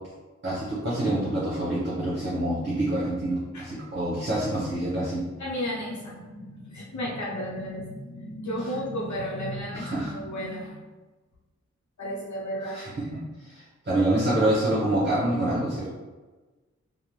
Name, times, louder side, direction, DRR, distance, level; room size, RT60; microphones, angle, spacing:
voice 1, 0.4-5.2 9.7-10.2 12.6-15.9, right 1 dB, 35° right, -9 dB, 0.8 m, -27 dB
voice 2, 5.4-10.8 12.0-12.8, equal, 75° left, -4 dB, 0.6 m, -33 dB
2.5 x 2.0 x 3.1 m, 1.3 s
wide cardioid pair, 85°, 29 cm